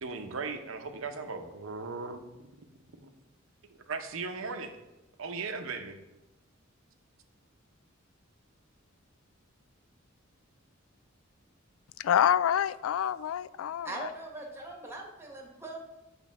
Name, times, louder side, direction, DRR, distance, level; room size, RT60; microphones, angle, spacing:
voice 1, 0.0-2.2 2.6-2.7 3.7-4.7 5.2-6.0, right 4 dB, 75° right, 7 dB, 0.7 m, -37 dB
voice 2, 12.0-14.1, left 9 dB, 80° left, 17 dB, 0.3 m, -27 dB
voice 3, 13.8-15.9, right 2 dB, 15° right, 0 dB, 1.2 m, -41 dB
8.5 x 3.3 x 6.1 m, 1.0 s
head